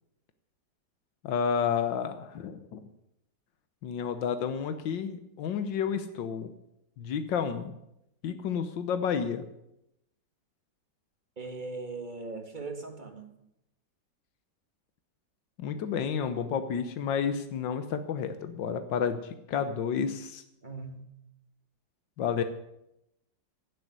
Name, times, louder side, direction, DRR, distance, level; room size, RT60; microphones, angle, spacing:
voice 1, 1.2-2.8 3.8-6.5 7.0-7.7 8.2-9.4 15.6-20.4 22.2-22.4, left 7 dB, 85° left, 9 dB, 1.7 m, -30 dB
voice 2, 11.4-13.3 20.6-21.1, right 3 dB, 25° right, 5 dB, 2.0 m, -39 dB
16.5 x 8.0 x 9.5 m, 0.84 s
omnidirectional pair, 2.0 m